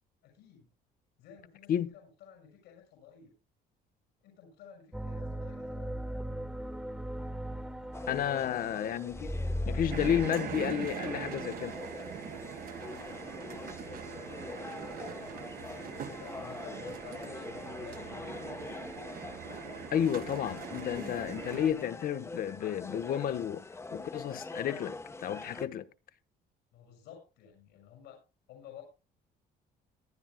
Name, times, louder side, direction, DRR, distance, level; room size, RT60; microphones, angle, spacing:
voice 1, 0.2-0.7 1.2-3.3 4.2-6.0 8.3-9.1 13.1-15.6 16.0-18.7 26.7-28.2 28.5-28.8, left 8 dB, 90° left, 5.9 m, -53 dB
sound 1, 4.9-10.3, equal, 5° right, 1.5 m, -37 dB
sound 2, 7.9-25.7, left 3 dB, 15° left, 1.0 m, -44 dB
voice 2, 8.1-9.3 9.7-11.8 19.9-23.6 23.9-25.9, left 9 dB, 60° left, 1.0 m, -32 dB
sound 3, 9.9-21.7, right 7 dB, 60° right, 1.7 m, -42 dB
23.0 x 10.0 x 2.2 m
cardioid pair, 110°, 17 cm